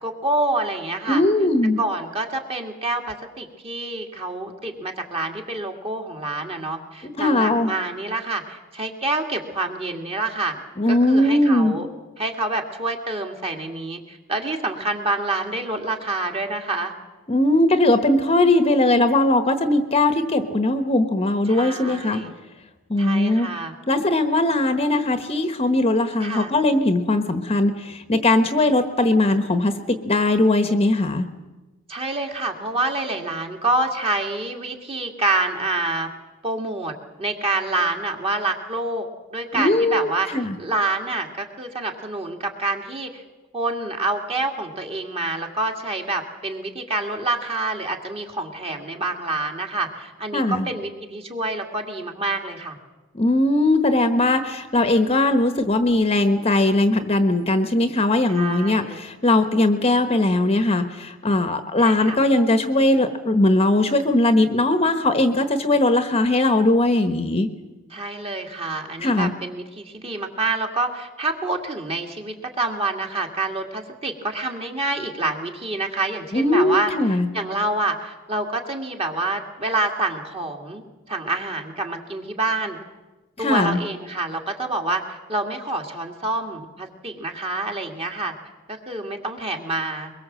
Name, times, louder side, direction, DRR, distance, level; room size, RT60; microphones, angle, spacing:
voice 1, 0.0-1.2 1.8-10.5 10.9-11.9 12.2-16.9 21.5-22.3 23.0-23.7 26.2-26.5 31.9-36.1 36.4-36.9 37.2-43.2 43.5-52.8 58.3-59.0 61.8-62.2 67.9-82.8 83.4-88.3 88.7-90.1, right 2 dB, 30° right, 3 dB, 2.5 m, -27 dB
voice 2, 1.1-1.8 7.2-7.7 10.8-11.8 17.3-22.2 22.9-23.5 23.9-31.3 39.5-40.6 50.3-50.7 53.1-67.5 69.0-69.3 76.3-77.3 83.4-83.8, left 2 dB, 30° left, 8 dB, 1.2 m, -19 dB
23.0 x 22.0 x 7.6 m, 1.2 s
head